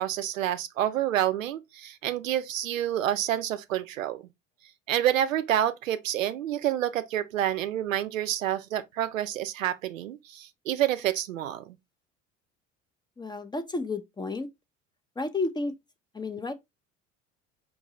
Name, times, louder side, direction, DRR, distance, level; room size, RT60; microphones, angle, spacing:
voice 1, 0.0-4.3 4.9-11.8, right 12 dB, 85° right, 0.5 m, -28 dB
voice 2, 13.2-14.5 15.2-15.7 16.1-16.5, left 3 dB, 10° left, 0.4 m, -31 dB
4.9 x 2.6 x 2.9 m
figure-of-eight pair, 65°, 38 cm